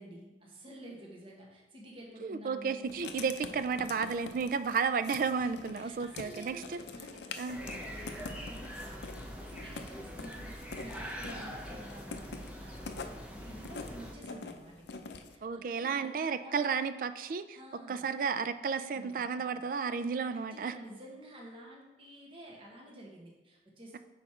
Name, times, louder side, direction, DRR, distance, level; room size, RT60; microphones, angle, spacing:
voice 1, 0.0-2.9 5.4-5.5 5.7-16.6 17.5-18.1 18.9-19.2 20.3-24.0, right 1 dB, 30° right, -2 dB, 1.2 m, -50 dB
voice 2, 2.2-6.8 7.4-7.6 15.4-17.6 17.9-20.7, right 5 dB, 50° right, 12 dB, 0.3 m, -32 dB
Writing, 2.8-15.4, left 4 dB, 75° left, 0.5 m, -46 dB
sound 1, 7.5-14.1, equal, 5° right, 0.8 m, -43 dB
6.3 x 4.9 x 4.3 m, 1.1 s
head